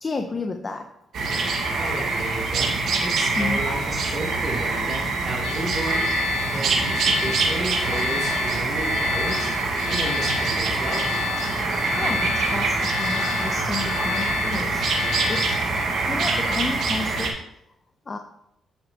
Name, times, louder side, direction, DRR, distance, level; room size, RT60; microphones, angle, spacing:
voice 1, 0.0-0.9 3.4-3.6 11.9-15.6 16.1-17.6 18.1-18.2, left 3 dB, 30° left, 5 dB, 0.6 m, -31 dB
sound 1, 1.1-17.3, right 3 dB, 70° right, 1.6 m, -24 dB
voice 2, 1.7-6.2 6.5-9.5 9.8-11.1, right 1 dB, 30° right, -3 dB, 2.9 m, -33 dB
sound 2, 5.4-15.9, left 12 dB, 85° left, 0.3 m, -32 dB
8.8 x 6.8 x 2.9 m, 0.80 s
cardioid pair, 90°, 0 cm